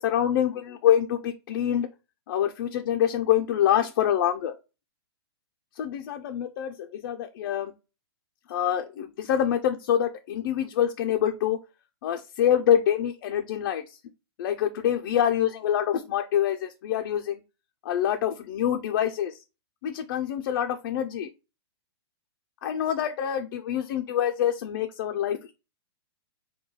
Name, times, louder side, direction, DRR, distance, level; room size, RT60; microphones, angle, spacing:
voice 1, 0.0-1.9 2.3-4.5 5.8-7.7 8.5-11.6 12.0-14.0 14.4-17.4 17.8-19.4 19.8-21.3 22.6-25.5, left 10 dB, 50° left, 0.4 m, -26 dB
3.7 x 2.2 x 3.1 m
hypercardioid pair, 145°, 14 cm